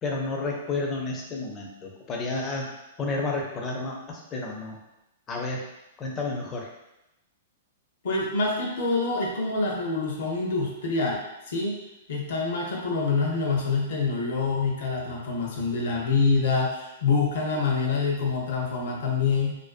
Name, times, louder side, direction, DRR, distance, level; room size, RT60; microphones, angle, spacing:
voice 1, 0.0-2.7 3.0-4.8 5.3-5.7 6.0-6.7, left 3 dB, 25° left, 0 dB, 0.5 m, -31 dB
voice 2, 8.0-11.2 11.5-11.8 12.1-19.5, left 4 dB, 70° left, -1 dB, 0.7 m, -26 dB
2.5 x 2.1 x 2.4 m, 0.92 s
hypercardioid pair, 140°, 0 cm